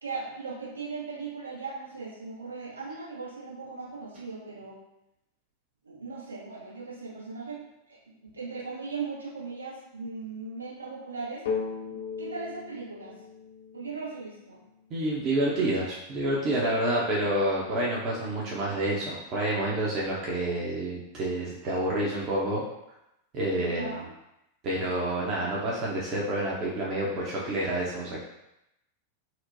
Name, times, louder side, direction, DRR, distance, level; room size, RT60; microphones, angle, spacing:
voice 1, 0.0-4.8 5.8-7.7 8.1-11.4 12.2-13.2 13.7-14.6 16.6-16.7 23.6-24.1, right 4 dB, 80° right, -7 dB, 1.1 m, -38 dB
sound 1, 11.5-15.1, left 5 dB, 60° left, 0.4 m, -37 dB
voice 2, 14.9-22.6 23.3-24.0 24.6-28.2, right 1 dB, 35° right, -5 dB, 0.7 m, -28 dB
4.3 x 2.1 x 2.6 m, 0.87 s
figure-of-eight pair, 90°, 0 cm